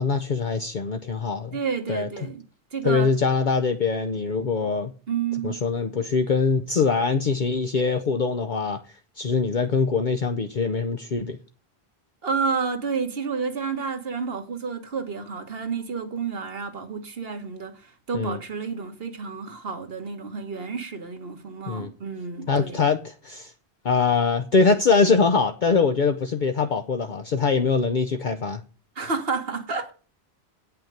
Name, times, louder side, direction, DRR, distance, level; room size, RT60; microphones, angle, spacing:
voice 1, 0.0-1.6 1.9-2.1 2.8-4.9 5.4-8.8 9.2-11.4 18.1-18.4 21.7-21.9 22.5-23.5 23.8-28.6, left 4 dB, 50° left, 0.8 m, -23 dB
voice 2, 1.5-2.4 2.7-3.1 5.1-5.6 12.2-22.8 28.9-29.9, right 5 dB, 65° right, 1.4 m, -30 dB
8.8 x 5.8 x 7.8 m
omnidirectional pair, 1.1 m